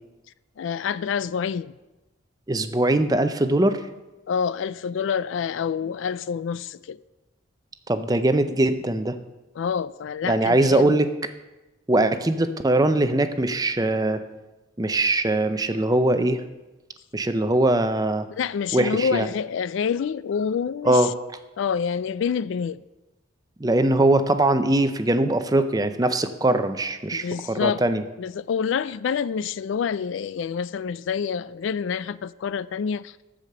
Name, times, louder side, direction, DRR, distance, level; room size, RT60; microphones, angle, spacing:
voice 1, 0.6-1.7 4.3-7.0 9.6-11.0 18.4-21.1 21.6-22.8 27.1-27.8 28.2-33.2, left 6 dB, 70° left, 0.3 m, -27 dB
voice 2, 2.5-3.8 7.9-9.2 10.2-11.1 11.9-14.2 14.8-16.4 17.1-18.3 18.7-19.3 20.8-21.1 23.6-28.0, right 1 dB, 20° right, 0.5 m, -21 dB
14.0 x 5.0 x 6.8 m
head